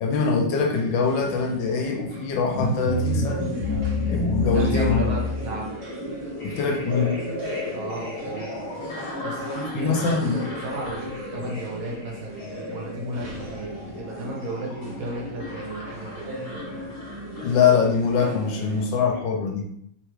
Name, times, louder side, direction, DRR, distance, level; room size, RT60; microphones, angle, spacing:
voice 1, 0.0-3.5 4.1-5.0 6.4-7.2 9.7-10.4 17.4-19.7, left 5 dB, 75° left, 2 dB, 1.2 m, -23 dB
sound 1, 0.7-18.9, equal, 65° right, 0.7 m, -37 dB
sound 2, 2.5-17.7, left 2 dB, 50° left, 1.4 m, -32 dB
voice 2, 4.5-5.7 7.7-8.6 9.2-16.3, right 1 dB, 85° right, -2 dB, 1.7 m, -34 dB
3.5 x 2.2 x 3.1 m, 0.69 s
omnidirectional pair, 2.3 m